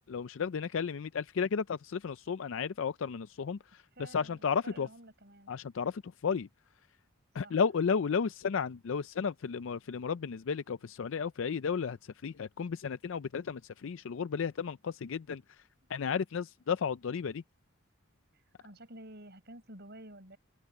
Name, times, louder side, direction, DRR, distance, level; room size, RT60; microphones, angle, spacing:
voice 1, 0.1-4.9 5.5-6.5 7.3-15.6 15.9-17.4, left 6 dB, 65° left, 0.4 m, -33 dB
voice 2, 4.0-5.5 7.4-7.6 18.3-20.4, right 1 dB, 55° right, 7.7 m, -51 dB
head